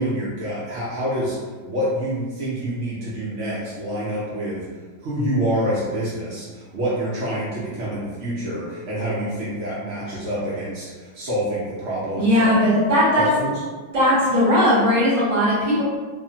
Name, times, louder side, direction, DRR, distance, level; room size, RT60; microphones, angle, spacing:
voice 1, 0.0-1.4 1.6-4.6 5.0-12.5 13.2-13.5, right 1 dB, 90° right, -8 dB, 0.6 m, -27 dB
voice 2, 12.2-13.3 13.9-15.8, equal, 35° right, -9 dB, 0.8 m, -18 dB
3.1 x 2.1 x 2.7 m, 1.4 s
omnidirectional pair, 2.2 m